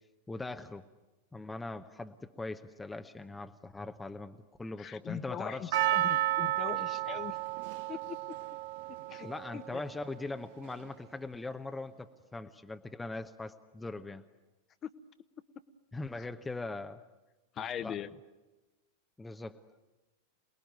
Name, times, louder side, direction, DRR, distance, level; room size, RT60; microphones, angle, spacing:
voice 1, 0.3-0.8 1.3-5.7 9.2-14.2 15.9-17.0 17.8-18.0 19.2-19.6, left 2 dB, 10° left, 7 dB, 1.0 m, -41 dB
voice 2, 4.8-7.4 7.9-8.4 9.1-9.3 9.5-9.8 16.2-16.3 17.6-18.1, left 9 dB, 30° left, 12 dB, 1.2 m, -40 dB
Percussion, 5.7-10.1 10.7-10.8, right 14 dB, 50° right, 0.9 m, -32 dB
28.0 x 20.5 x 9.4 m, 1.1 s
figure-of-eight pair, 90°, 0 cm